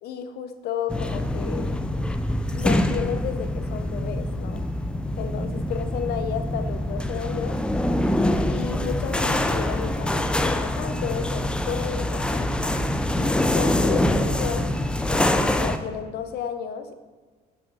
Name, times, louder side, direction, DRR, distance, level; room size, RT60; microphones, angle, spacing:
voice 1, 0.0-1.8 2.5-4.7 5.2-7.6 8.5-12.5 13.2-14.7 15.1-17.0, left 8 dB, 70° left, 9 dB, 0.6 m, -32 dB
sound 1, 0.9-15.8, left 1 dB, 5° left, 0.3 m, -25 dB
7.0 x 3.5 x 5.0 m, 1.4 s
cardioid pair, 110°, 17 cm